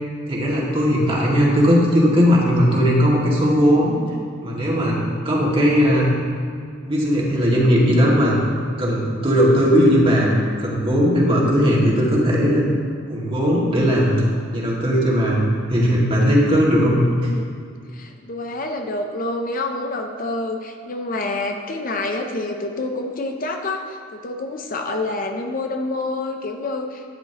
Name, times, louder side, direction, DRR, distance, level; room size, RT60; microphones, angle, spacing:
voice 1, 0.3-4.0 4.4-5.0 5.2-6.1 6.9-8.4 8.8-10.3 10.6-12.7 13.1-14.2 14.5-17.3, equal, 30° right, -5 dB, 2.2 m, -18 dB
voice 2, 17.9-27.0, left 2 dB, 45° left, 4 dB, 0.7 m, -27 dB
12.5 x 10.0 x 3.0 m, 2.2 s
head